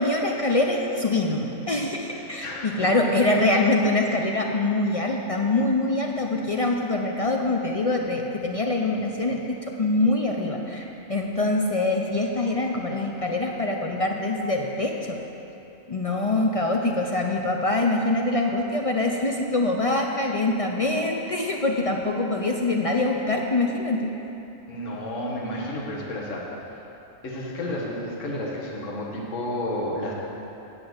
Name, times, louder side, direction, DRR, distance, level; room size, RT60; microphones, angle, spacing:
voice 1, 0.0-15.2 15.9-24.1, left 2 dB, 50° left, 1 dB, 0.4 m, -24 dB
voice 2, 2.1-3.1 24.7-26.5 27.2-30.1, left 1 dB, 70° left, -4 dB, 1.7 m, -31 dB
8.7 x 5.9 x 7.9 m, 2.9 s
omnidirectional pair, 1.4 m